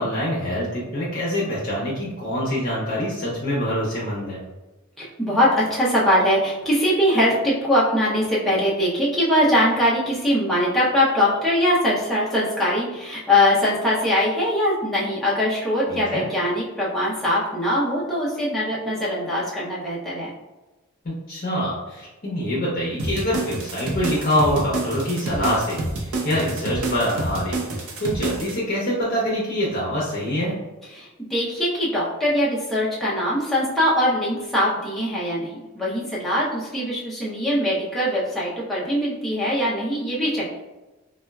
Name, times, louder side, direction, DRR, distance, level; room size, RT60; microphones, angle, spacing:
voice 1, 0.0-4.4 15.9-16.2 21.0-30.5, equal, 40° left, -6 dB, 0.7 m, -25 dB
voice 2, 5.0-20.3 30.9-40.6, left 1 dB, ahead, -8 dB, 0.5 m, -22 dB
sound 1, 23.0-28.6, right 2 dB, 85° right, 0.6 m, -28 dB
4.1 x 2.3 x 2.2 m, 1.1 s
head